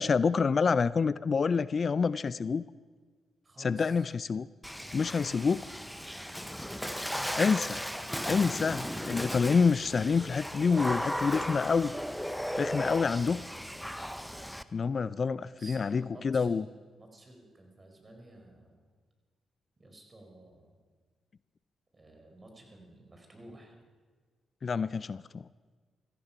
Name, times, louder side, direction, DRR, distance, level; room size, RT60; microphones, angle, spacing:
voice 1, 0.0-2.6 3.6-4.5 4.9-5.7 7.4-7.8 8.3-11.9 12.6-13.4 14.7-16.7 24.6-25.4, left 5 dB, 50° left, 18 dB, 0.3 m, -27 dB
voice 2, 3.5-3.9 15.6-16.7 17.0-18.7 19.8-20.7 22.0-23.7, right 1 dB, 30° right, 3 dB, 4.5 m, -52 dB
Water / Splash splatter, 4.6-14.6, equal, ahead, 0.9 m, -36 dB
16.0 x 14.5 x 5.8 m, 1.5 s
hypercardioid pair, 45°, 0 cm